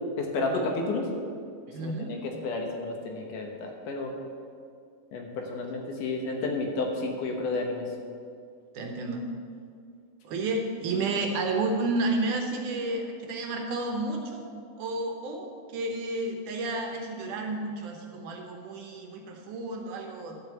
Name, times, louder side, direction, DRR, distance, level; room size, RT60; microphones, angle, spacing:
voice 1, 0.2-1.1 1.8-4.1 5.1-7.9, left 3 dB, 70° left, 2 dB, 2.5 m, -31 dB
voice 2, 1.7-2.1 8.7-9.2 10.2-14.5 14.8-20.4, right 2 dB, 70° right, 2 dB, 2.3 m, -31 dB
11.5 x 5.3 x 8.0 m, 2.3 s
omnidirectional pair, 4.0 m